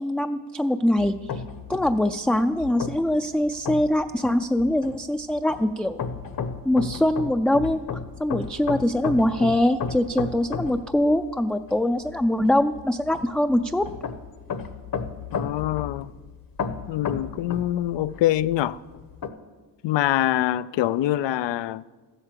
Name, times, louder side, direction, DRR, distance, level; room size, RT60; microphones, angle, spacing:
voice 1, 0.0-1.4 1.7-6.0 6.7-7.8 8.2-13.9, left 1 dB, 5° left, 0.4 m, -23 dB
sound 1, 1.0-19.3, left 6 dB, 55° left, 1.1 m, -34 dB
voice 2, 15.3-16.1 16.9-18.8 19.8-21.8, left 13 dB, 80° left, 0.6 m, -24 dB
13.5 x 8.2 x 7.4 m
cardioid pair, 90°, 42 cm